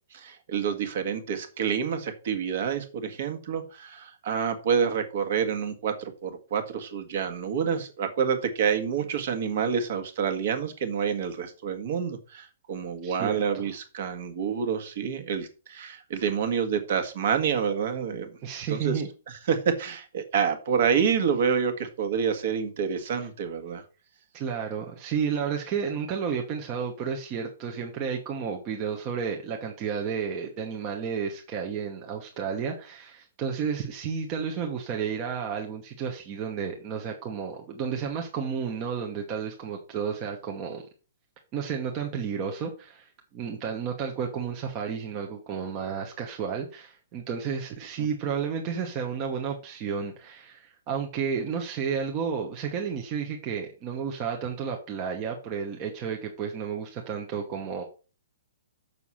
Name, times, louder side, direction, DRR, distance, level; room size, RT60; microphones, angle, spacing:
voice 1, 0.1-18.3 18.7-19.0 19.3-23.8 48.0-48.1, right 7 dB, 40° right, 7 dB, 1.6 m, -28 dB
voice 2, 13.0-13.4 18.4-19.1 24.3-40.8 41.5-57.8, right 6 dB, 20° right, 2 dB, 1.0 m, -32 dB
6.8 x 6.2 x 5.6 m, 0.35 s
hypercardioid pair, 175°, 0 cm